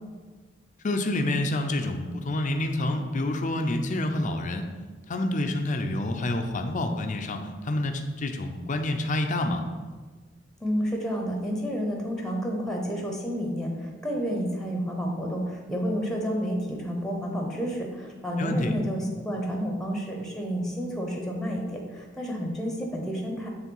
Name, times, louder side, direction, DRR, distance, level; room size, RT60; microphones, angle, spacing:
voice 1, 0.8-4.6 5.1-9.6 18.4-18.7, left 1 dB, 40° left, 5 dB, 0.5 m, -28 dB
voice 2, 10.6-23.5, equal, 5° left, 0 dB, 0.9 m, -30 dB
7.3 x 3.3 x 5.4 m, 1.4 s
head